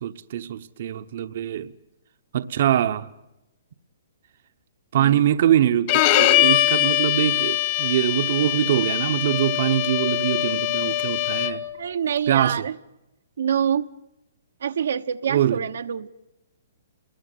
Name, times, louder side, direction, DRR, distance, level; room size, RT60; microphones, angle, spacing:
voice 1, 0.0-1.7 2.3-3.1 4.9-11.6 12.3-12.7 15.3-15.6, right 11 dB, 55° right, 1.0 m, -23 dB
Bowed string instrument, 5.9-11.7, left 15 dB, 35° left, 1.4 m, -22 dB
voice 2, 11.8-12.8 13.4-13.8 14.6-16.1, right 8 dB, 75° right, 1.1 m, -26 dB
29.0 x 20.5 x 9.3 m
hypercardioid pair, 160°, 0 cm